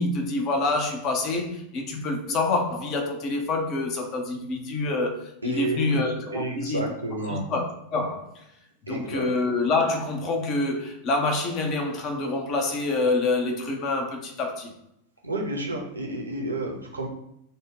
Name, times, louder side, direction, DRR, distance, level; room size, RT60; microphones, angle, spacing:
voice 1, 0.0-6.9 7.2-8.3 8.9-14.7, left 2 dB, 35° left, 0.8 m, -26 dB
voice 2, 5.4-7.4 8.9-9.2 15.2-17.1, right 2 dB, 80° right, 0.9 m, -31 dB
5.3 x 2.3 x 3.7 m
figure-of-eight pair, 90°, 0 cm